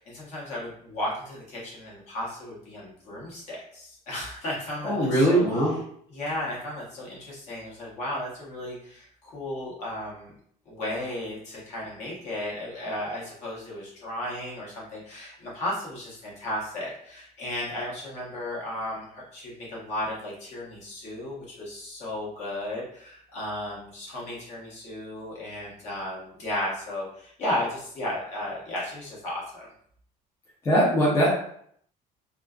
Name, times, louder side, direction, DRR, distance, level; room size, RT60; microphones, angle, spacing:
voice 1, 0.0-5.5 6.1-10.3 10.7-29.7, left 1 dB, 50° left, -5 dB, 0.9 m, -34 dB
voice 2, 4.8-5.7 30.6-31.3, right 1 dB, 20° left, -6 dB, 0.5 m, -21 dB
2.4 x 2.2 x 2.3 m, 0.65 s
cardioid pair, 170°, 16 cm